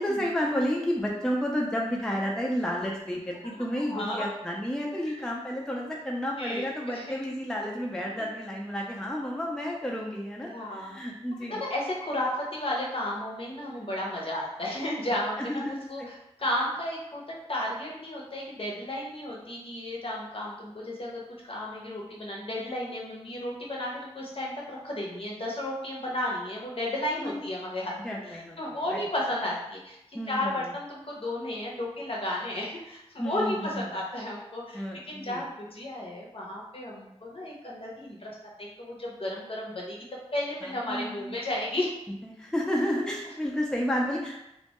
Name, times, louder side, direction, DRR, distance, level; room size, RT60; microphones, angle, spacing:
voice 1, 0.0-11.6 15.4-16.1 27.2-27.4 28.0-28.6 28.9-29.0 30.1-30.6 33.2-33.8 34.7-35.4 40.6-41.4 42.2-44.4, equal, 5° left, -2 dB, 0.3 m, -31 dB
voice 2, 3.9-4.3 5.0-5.3 6.4-7.1 10.4-11.0 11.5-27.9 28.2-38.3 38.6-40.0 40.3-41.9, left 1 dB, 55° left, -3 dB, 0.6 m, -33 dB
2.1 x 2.1 x 2.8 m, 0.86 s
wide cardioid pair, 65°, 11 cm